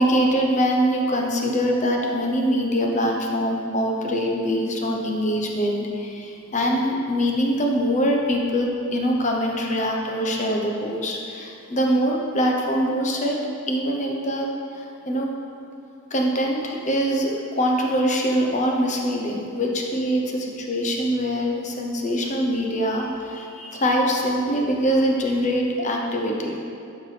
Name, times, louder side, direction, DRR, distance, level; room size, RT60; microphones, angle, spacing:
voice 1, 0.0-13.4 13.7-14.5 14.7-15.3 16.1-26.6, equal, 35° left, 0 dB, 0.8 m, -23 dB
11.5 x 4.6 x 3.3 m, 2.6 s
head